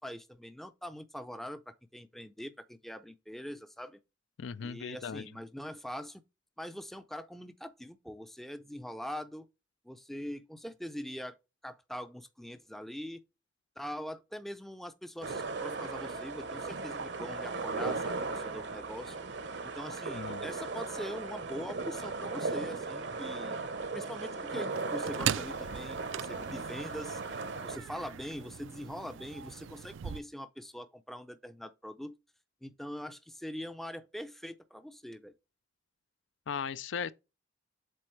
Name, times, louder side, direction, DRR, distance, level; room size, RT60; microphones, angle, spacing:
voice 1, 0.0-4.0 4.6-6.2 6.6-9.5 9.8-11.4 11.6-13.2 13.8-19.2 19.6-23.6 23.9-27.2 27.6-32.2 32.6-35.3, equal, ahead, 0.4 m, -43 dB
voice 2, 4.4-5.2 20.1-20.4 36.5-37.1, left 6 dB, 75° left, 0.4 m, -37 dB
sound 1, 15.2-27.8, right 3 dB, 60° right, 0.7 m, -37 dB
sound 2, 24.7-30.2, right 9 dB, 80° right, 0.4 m, -39 dB
7.7 x 3.8 x 3.2 m
head